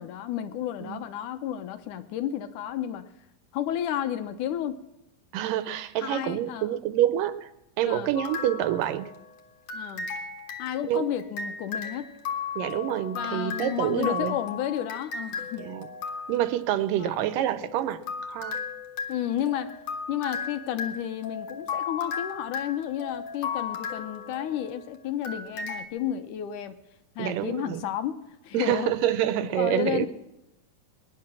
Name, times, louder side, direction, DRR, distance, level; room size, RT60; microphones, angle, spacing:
voice 1, 0.0-3.1 3.5-4.8 6.0-6.8 7.9-8.1 9.7-10.1 10.6-12.1 13.1-15.7 17.0-17.3 19.1-19.8 20.1-26.8 27.2-28.9 29.5-30.1, left 11 dB, 75° left, 2.3 m, -32 dB
voice 2, 5.3-7.5 7.8-9.1 10.8-11.1 12.6-14.4 15.6-15.9 16.3-18.6 27.2-27.9 28.5-30.1, right 12 dB, 85° right, 2.4 m, -27 dB
sound 1, 8.2-9.3 9.7-16.6 17.6-24.8 25.2-25.8, left 5 dB, 55° left, 2.2 m, -36 dB
20.5 x 10.5 x 6.2 m
omnidirectional pair, 3.8 m